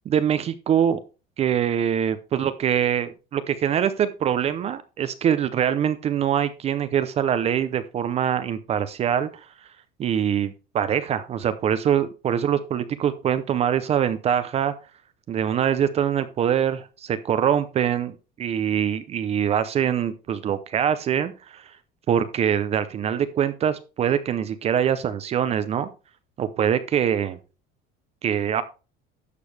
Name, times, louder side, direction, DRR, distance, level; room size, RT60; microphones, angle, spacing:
voice 1, 0.1-1.0 1.4-9.4 10.0-14.7 15.3-21.7 22.1-25.9 26.4-27.4 28.2-28.6, right 9 dB, 30° right, 12 dB, 0.6 m, -24 dB
11.5 x 6.8 x 3.3 m, 0.32 s
cardioid pair, 165°, 21 cm